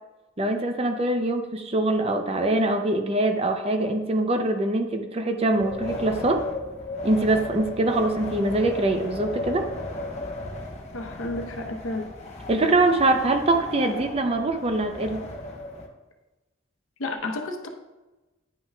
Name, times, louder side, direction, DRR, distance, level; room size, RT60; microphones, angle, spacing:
voice 1, 0.4-6.4 7.0-9.7 12.5-15.3, right 2 dB, 30° right, 6 dB, 0.5 m, -23 dB
Wind, 5.5-15.9, left 2 dB, 35° left, 0.9 m, -35 dB
voice 2, 10.9-12.1 17.0-17.7, left 2 dB, 90° left, 4 dB, 0.9 m, -31 dB
9.9 x 5.6 x 2.3 m, 1.1 s
head